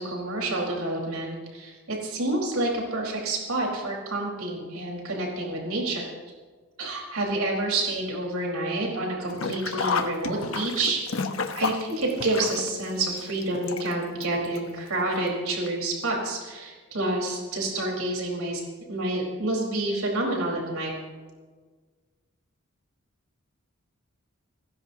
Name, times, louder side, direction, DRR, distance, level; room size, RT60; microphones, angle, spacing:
voice 1, 0.0-6.1 6.8-11.0 11.5-18.6 18.9-20.9, right 2 dB, 80° right, -1 dB, 4.7 m, -28 dB
Sink (filling or washing), 9.3-14.2 14.5-14.6 15.7-15.8 16.1-16.2, left 4 dB, 65° left, 1.1 m, -30 dB
30.0 x 15.5 x 2.9 m, 1.4 s
head